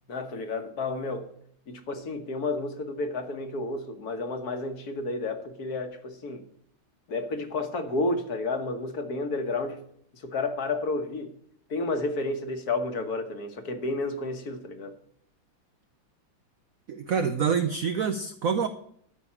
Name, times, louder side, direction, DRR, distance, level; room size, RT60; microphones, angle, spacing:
voice 1, 0.1-1.3 1.7-6.4 7.1-9.8 10.1-11.3 11.7-14.9, left 2 dB, 50° left, 1.4 m, -31 dB
voice 2, 16.9-18.7, right 6 dB, 90° right, 0.7 m, -26 dB
13.0 x 5.2 x 8.6 m
omnidirectional pair, 2.4 m